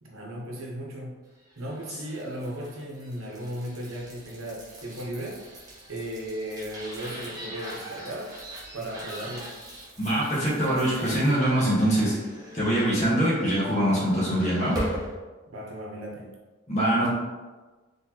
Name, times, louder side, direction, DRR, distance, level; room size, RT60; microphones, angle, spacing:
voice 1, 0.0-1.2 1.6-5.4 5.9-8.3 8.7-9.5 15.5-16.3, right 1 dB, 75° right, -2 dB, 0.9 m, -36 dB
sound 1, 1.5-15.2, equal, 15° right, 0.9 m, -40 dB
voice 2, 10.0-12.2 12.5-14.8 16.7-17.1, right 1 dB, 30° left, -7 dB, 1.3 m, -23 dB
4.2 x 3.2 x 2.8 m, 1.3 s
head